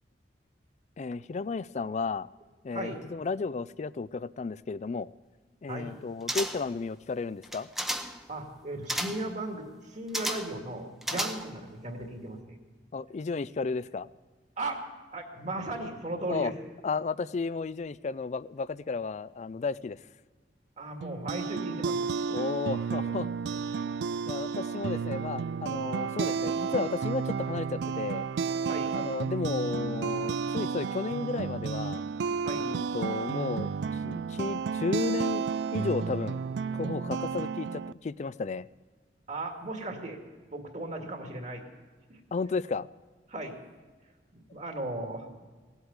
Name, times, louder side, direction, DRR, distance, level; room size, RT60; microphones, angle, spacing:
voice 1, 1.0-2.3 2.6-5.1 5.6-7.7 11.1-11.2 12.9-14.1 16.3-16.5 16.8-20.0 22.3-23.3 24.3-28.3 28.9-32.0 32.6-33.7 34.0-36.4 36.7-38.7 42.3-42.9, left 4 dB, 40° left, 19 dB, 0.4 m, -33 dB
voice 2, 2.7-3.1 5.7-6.0 8.3-12.6 14.6-14.8 15.1-16.5 20.8-22.1 28.6-29.0 32.4-32.7 39.3-40.2 40.5-41.6 42.1-42.2 43.3-43.6 44.3-45.4, right 2 dB, 40° right, 3 dB, 2.1 m, -37 dB
sound 1, 6.3-6.8 7.4-8.2 8.9-9.3 10.1-10.6 11.0-11.7 12.0-12.1, equal, ahead, 0.8 m, -33 dB
sound 2, 21.0-37.9, right 5 dB, 70° right, 0.4 m, -32 dB
17.0 x 8.1 x 9.6 m, 1.4 s
head